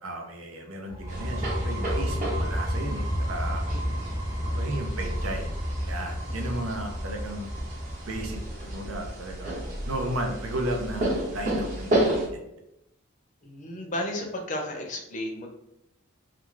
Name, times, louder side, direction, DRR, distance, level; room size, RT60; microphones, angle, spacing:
voice 1, 0.0-3.6 4.4-5.5 5.9-7.5 8.1-8.4 8.7-12.4, right 1 dB, 90° right, 2 dB, 0.6 m, -34 dB
sound 1, 0.9-8.5, equal, 20° right, 0.3 m, -31 dB
sound 2, 1.1-12.3, right 1 dB, 40° right, 0.8 m, -32 dB
voice 2, 13.4-15.5, left 1 dB, 35° left, 2 dB, 0.5 m, -33 dB
2.4 x 2.3 x 3.1 m, 0.84 s
head